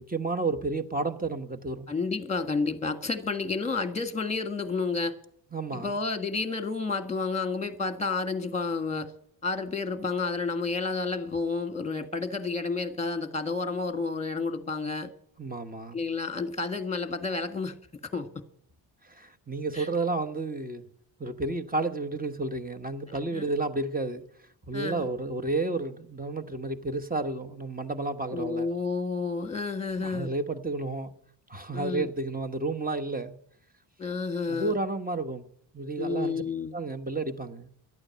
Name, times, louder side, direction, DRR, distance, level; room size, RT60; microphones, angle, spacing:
voice 1, 0.0-1.9 5.5-5.9 15.4-16.0 19.0-20.9 21.2-24.2 24.7-28.7 30.0-31.1 31.5-33.4 34.5-35.5 35.7-36.4 36.7-37.7, right 3 dB, 20° right, 1.2 m, -31 dB
voice 2, 1.9-5.2 5.7-9.1 9.4-15.1 15.9-17.8 18.1-18.3 19.7-19.9 23.1-23.5 24.7-25.1 28.3-30.3 31.7-32.1 34.0-34.8 36.0-36.7, left 4 dB, 15° left, 1.7 m, -30 dB
12.0 x 8.8 x 8.5 m
cardioid pair, 75°, 46 cm